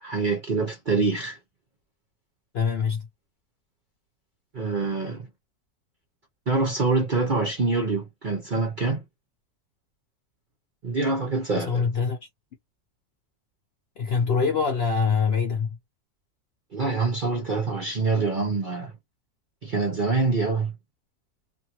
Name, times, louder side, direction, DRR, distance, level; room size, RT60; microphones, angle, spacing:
voice 1, 0.0-1.4 4.5-5.3 6.5-9.0 10.8-11.9 16.7-18.9 19.6-20.7, right 3 dB, 50° right, 0.6 m, -25 dB
voice 2, 2.5-3.1 11.5-12.2 14.0-15.8, left 5 dB, 65° left, 0.6 m, -24 dB
2.5 x 2.5 x 2.8 m
omnidirectional pair, 1.6 m